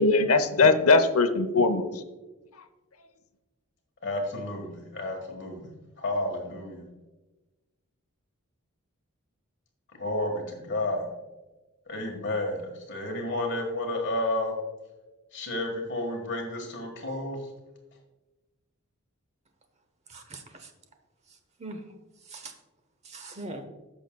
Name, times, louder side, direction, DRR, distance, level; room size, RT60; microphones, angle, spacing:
voice 1, 0.0-2.0, left 3 dB, 85° left, 0.7 m, -21 dB
voice 2, 4.0-5.7 6.0-6.8 9.9-11.1 11.9-14.5 15.3-17.4, left 1 dB, 55° left, 1.5 m, -31 dB
voice 3, 20.1-20.7 21.3-21.8 22.2-22.5 23.0-23.6, right 2 dB, 30° right, 0.9 m, -42 dB
15.0 x 6.2 x 2.3 m
head